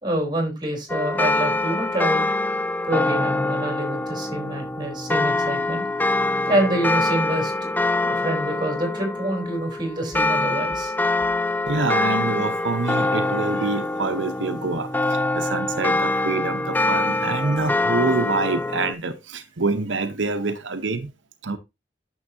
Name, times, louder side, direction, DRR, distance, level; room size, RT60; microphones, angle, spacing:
voice 1, 0.0-2.3 2.8-5.9 6.5-7.7 8.0-10.9 17.4-17.5, right 1 dB, 25° right, 3.7 m, -26 dB
Westminster Chimes Full, 0.9-18.9, left 2 dB, 10° left, 0.4 m, -24 dB
voice 2, 11.7-21.1 21.4-21.6, right 3 dB, 85° right, 0.9 m, -26 dB
9.7 x 7.1 x 2.7 m
head